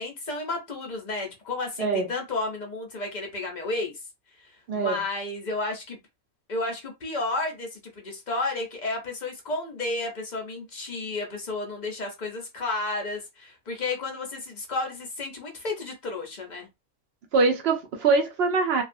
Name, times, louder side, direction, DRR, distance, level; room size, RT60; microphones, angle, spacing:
voice 1, 0.0-4.0 4.4-6.0 6.5-16.7, left 2 dB, 55° left, 0.5 m, -32 dB
voice 2, 1.8-2.1 4.7-5.0 17.3-18.8, right 4 dB, 65° right, 0.6 m, -23 dB
2.5 x 2.3 x 2.5 m
omnidirectional pair, 1.5 m